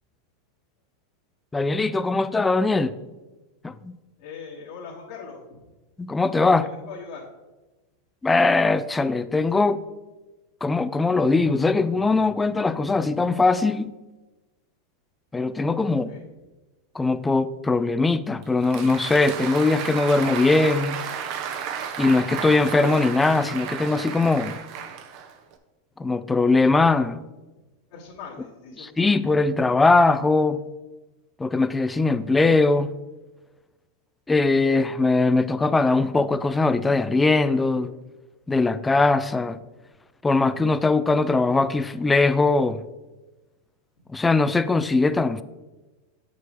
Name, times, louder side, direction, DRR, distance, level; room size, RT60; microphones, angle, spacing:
voice 1, 1.5-2.9 3.6-3.9 6.0-6.7 8.2-9.8 10.6-13.9 15.3-16.2 16.9-21.0 22.0-24.6 26.0-27.2 28.8-30.6 31.4-33.0 34.3-37.9 38.5-39.6 40.2-42.8 44.1-45.4, left 3 dB, 10° left, 0.4 m, -21 dB
voice 2, 4.2-5.6 6.8-7.3 16.0-16.2 27.9-29.0, left 5 dB, 65° left, 1.7 m, -40 dB
Applause, 18.4-25.5, right 8 dB, 50° right, 0.8 m, -33 dB
8.3 x 6.0 x 3.1 m
hypercardioid pair, 105°, 0 cm